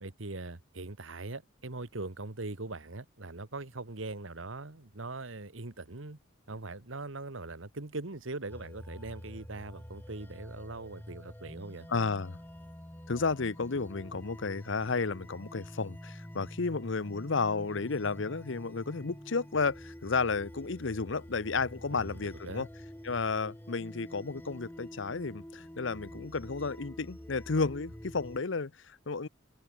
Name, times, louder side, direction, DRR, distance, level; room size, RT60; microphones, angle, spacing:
voice 1, 0.0-6.2 6.5-11.9 21.9-22.7, right 2 dB, 80° right, 1.5 m, -41 dB
sound 1, 8.5-28.4, equal, 10° left, 1.3 m, -47 dB
voice 2, 11.9-12.4 13.1-22.7 23.0-29.3, left 4 dB, 70° left, 0.8 m, -32 dB
open air
head